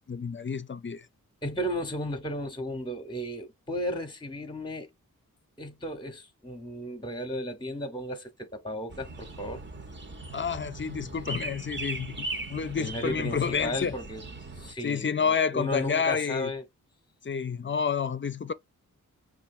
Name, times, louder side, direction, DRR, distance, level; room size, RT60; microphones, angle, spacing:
voice 1, 0.1-1.0 10.3-13.9 14.8-16.5 17.2-18.5, left 6 dB, 35° left, 0.5 m, -29 dB
voice 2, 1.4-4.9 5.6-9.6 12.8-14.3 14.6-16.6, equal, 15° left, 0.9 m, -34 dB
sound 1, 8.9-14.7, right 2 dB, 35° right, 0.9 m, -39 dB
5.7 x 2.4 x 2.6 m
wide cardioid pair, 95°, 33 cm